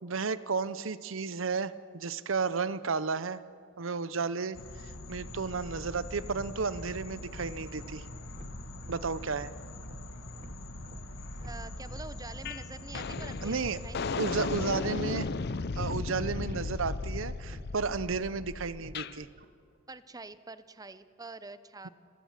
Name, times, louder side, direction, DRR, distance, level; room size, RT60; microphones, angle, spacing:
voice 1, 0.0-3.4 3.8-8.1 8.9-9.5 13.4-13.8 14.2-15.3 15.8-19.3 21.8-21.9, right 4 dB, 70° right, 15 dB, 0.7 m, -33 dB
sound 1, 4.5-14.7, left 1 dB, 75° left, 1.5 m, -43 dB
sound 2, 5.8-19.5, right 1 dB, 40° right, 1.3 m, -52 dB
voice 2, 11.4-14.2 19.9-21.9, right 3 dB, 20° right, 13 dB, 0.7 m, -46 dB
sound 3, 12.4-12.6 12.9-19.1, left 4 dB, 55° left, 0.6 m, -35 dB
30.0 x 16.0 x 7.4 m, 2.3 s
head